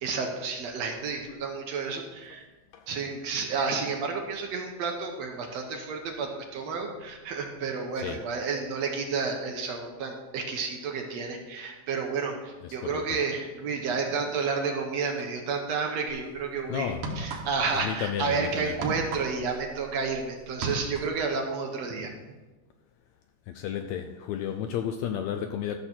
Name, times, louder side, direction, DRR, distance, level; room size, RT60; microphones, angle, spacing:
voice 1, 0.0-2.5 2.9-16.9 17.2-22.1, right 4 dB, 65° right, 2 dB, 1.9 m, -31 dB
voice 2, 12.6-13.2 16.7-17.3 17.7-18.8 23.5-25.8, left 9 dB, 80° left, 7 dB, 1.7 m, -33 dB
sound 1, 16.1-16.3 16.9-17.8 18.1-20.2 20.5-21.2, right 3 dB, 85° right, 2.7 m, -35 dB
13.0 x 6.7 x 4.4 m, 1.2 s
omnidirectional pair, 3.6 m